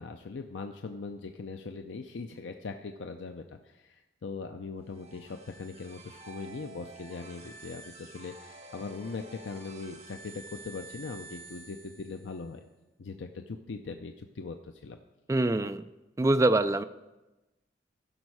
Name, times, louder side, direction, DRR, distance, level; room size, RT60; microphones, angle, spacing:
voice 1, 0.0-12.6 13.0-15.0, left 4 dB, 80° left, 6 dB, 0.5 m, -40 dB
sound 1, 4.8-12.5, right 3 dB, 35° right, 1.2 m, -50 dB
voice 2, 15.3-15.8 16.2-16.8, right 2 dB, 15° right, 11 dB, 0.3 m, -24 dB
15.0 x 6.3 x 4.7 m, 1.1 s
head